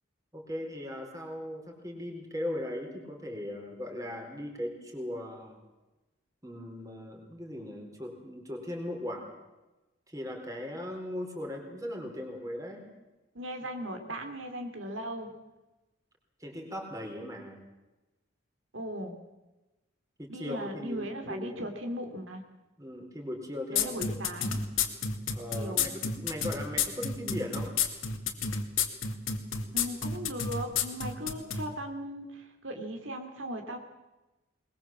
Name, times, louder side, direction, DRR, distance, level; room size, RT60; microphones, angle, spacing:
voice 1, 0.3-5.6 6.4-9.3 10.1-12.9 16.4-17.6 20.2-21.6 22.8-24.4 25.3-27.7, left 1 dB, 15° right, 2 dB, 4.4 m, -38 dB
voice 2, 13.3-15.3 18.7-19.1 20.3-22.4 23.7-24.6 25.6-25.9 29.7-33.8, equal, 75° right, 5 dB, 2.8 m, -38 dB
sound 1, 23.8-31.6, left 6 dB, 85° left, 2.4 m, -29 dB
21.5 x 21.5 x 7.5 m, 1.0 s
head